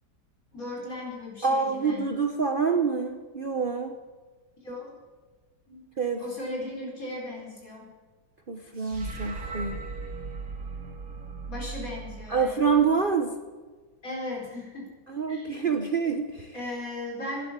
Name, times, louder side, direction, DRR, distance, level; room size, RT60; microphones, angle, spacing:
voice 1, 0.5-2.1 4.6-5.0 5.7-5.8 6.2-7.8 11.5-12.8 14.0-14.9 15.3-15.8 16.5-17.4, left 1 dB, 60° left, -2 dB, 4.9 m, -37 dB
voice 2, 1.4-4.0 6.0-6.2 8.5-9.8 12.3-13.3 15.1-16.5, right 5 dB, 40° right, 5 dB, 0.9 m, -26 dB
sound 1, 8.8-13.1, right 4 dB, 85° right, 2.4 m, -38 dB
12.5 x 10.5 x 8.9 m, 1.3 s
omnidirectional pair, 1.7 m